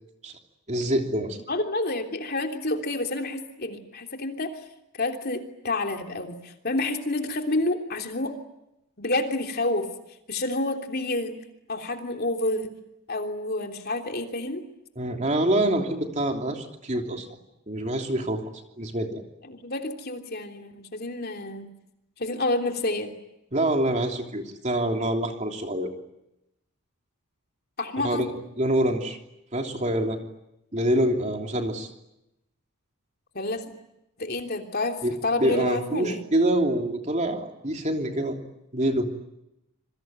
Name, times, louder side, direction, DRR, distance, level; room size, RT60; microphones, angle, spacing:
voice 1, 0.7-1.4 15.0-17.3 17.7-18.4 18.8-19.2 23.5-25.9 28.0-28.3 28.6-29.2 29.5-30.2 30.7-31.9 35.0-35.1 35.4-38.4 38.7-39.1, right 1 dB, 30° right, 3 dB, 3.1 m, -25 dB
voice 2, 1.5-4.6 4.9-8.3 9.0-9.9 10.3-11.4 11.7-12.7 13.1-14.6 19.5-21.7 22.2-23.1 27.8-28.3 33.3-33.6 34.2-35.0 35.2-36.2, left 2 dB, 45° left, 4 dB, 3.3 m, -29 dB
27.5 x 23.5 x 9.3 m, 0.88 s
head